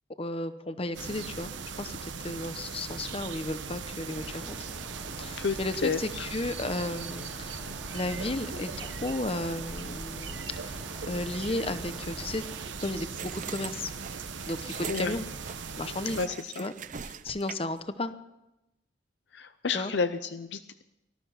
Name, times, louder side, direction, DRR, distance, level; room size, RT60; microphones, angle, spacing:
voice 1, 0.2-1.5 1.8-4.6 5.2-12.4 12.8-13.9 14.5-15.3 15.8-16.2 16.6-16.7 17.0-18.1 19.7-19.9, left 2 dB, 30° left, 11 dB, 0.9 m, -34 dB
sound 1, 0.9-16.3, right 5 dB, 90° right, 1.1 m, -39 dB
sound 2, 4.1-12.7, equal, 5° right, 1.9 m, -46 dB
voice 2, 5.4-6.3 14.9-15.1 16.2-16.6 19.3-20.8, left 5 dB, 65° left, 10 dB, 0.6 m, -31 dB
sound 3, 13.2-17.8, right 7 dB, 45° right, 0.6 m, -42 dB
18.5 x 13.5 x 5.8 m, 0.92 s
head